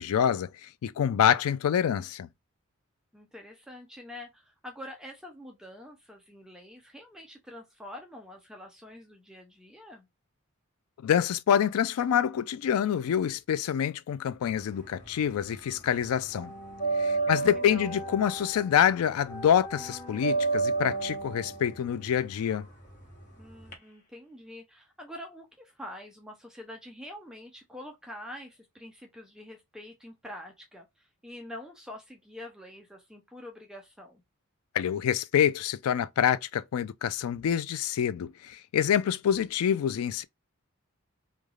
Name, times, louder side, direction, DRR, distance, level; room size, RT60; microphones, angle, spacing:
voice 1, 0.0-2.3 11.0-16.5 17.0-22.7 34.7-40.2, left 9 dB, 80° left, 0.3 m, -26 dB
voice 2, 3.1-10.1 17.1-17.9 23.4-34.2, left 1 dB, 5° right, 0.4 m, -46 dB
sound 1, 14.5-15.6 15.8-23.7, right 3 dB, 35° left, 0.9 m, -32 dB
3.2 x 2.3 x 2.3 m
head